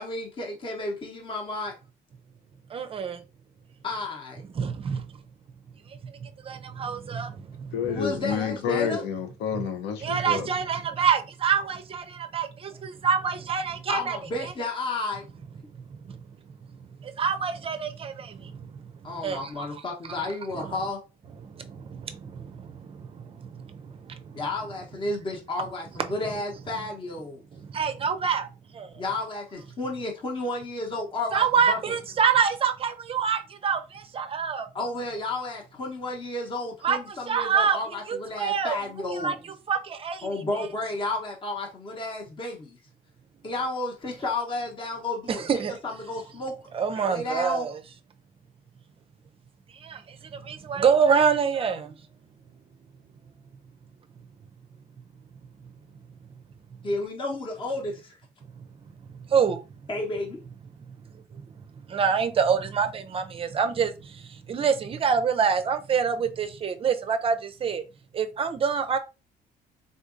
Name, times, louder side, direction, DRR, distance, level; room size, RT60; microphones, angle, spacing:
voice 1, 0.0-1.7 3.8-4.4 7.9-9.0 13.9-15.2 19.0-21.0 24.3-27.4 29.0-31.8 34.7-39.4 40.2-42.8 43.4-45.4 45.8-46.5 47.0-47.7 56.8-58.2 59.9-60.4, left 2 dB, 30° left, 0.9 m, -32 dB
voice 2, 2.7-3.2 4.5-5.1 6.1-7.7 10.0-14.5 17.0-18.7 19.2-19.7 20.5-20.8 21.4-24.3 27.5-28.5 28.7-28.9 31.3-34.7 36.8-37.8 38.1-38.8 39.1-39.4 39.7-40.7 45.3-45.7 46.7-47.8 49.8-52.0 59.3-59.6 61.4-61.5 61.9-67.8 68.1-69.0, right 6 dB, 35° right, 0.4 m, -26 dB
voice 3, 7.7-10.5, left 8 dB, 80° left, 0.7 m, -29 dB
3.6 x 2.6 x 2.5 m
cardioid pair, 110°, 17 cm